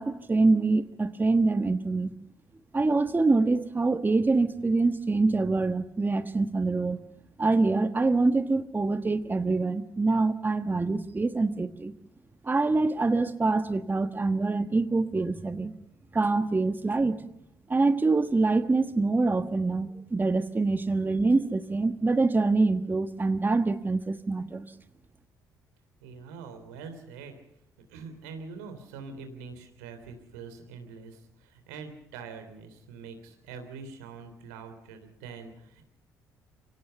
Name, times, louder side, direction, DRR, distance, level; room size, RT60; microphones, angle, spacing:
voice 1, 0.0-2.1 2.7-7.0 7.4-11.9 12.4-15.7 16.1-17.3 17.7-24.7, right 3 dB, 25° right, 9 dB, 1.4 m, -25 dB
voice 2, 26.0-27.4 27.9-35.8, right 5 dB, 85° right, 7 dB, 3.5 m, -44 dB
24.5 x 17.0 x 6.9 m, 0.79 s
hypercardioid pair, 55°, 8 cm